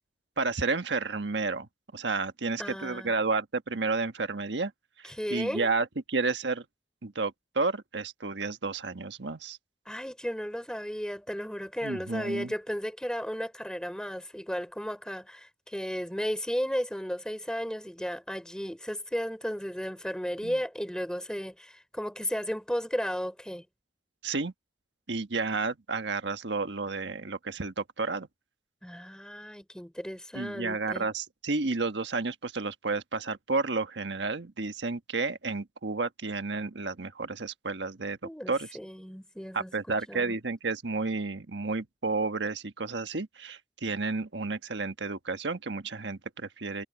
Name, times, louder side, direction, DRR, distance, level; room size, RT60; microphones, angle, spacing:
voice 1, 0.4-4.7 5.3-6.6 7.0-9.6 11.8-12.5 20.4-20.6 24.2-24.5 25.1-28.3 30.3-38.7 39.5-46.8, right 3 dB, 85° right, 1.4 m, -31 dB
voice 2, 2.6-3.1 5.0-5.7 9.8-23.6 28.8-31.1 38.2-39.7 40.1-40.3, equal, 5° left, 3.2 m, -34 dB
head